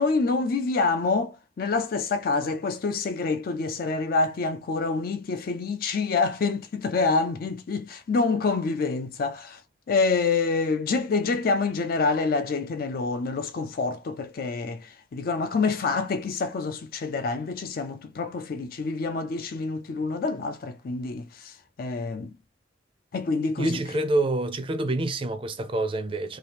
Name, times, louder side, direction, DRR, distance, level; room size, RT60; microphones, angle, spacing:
voice 1, 0.0-9.6 9.9-22.4 23.1-23.8, left 4 dB, 55° left, 0.4 m, -27 dB
voice 2, 23.6-26.4, right 2 dB, 30° right, 0.4 m, -27 dB
2.8 x 2.4 x 3.3 m
head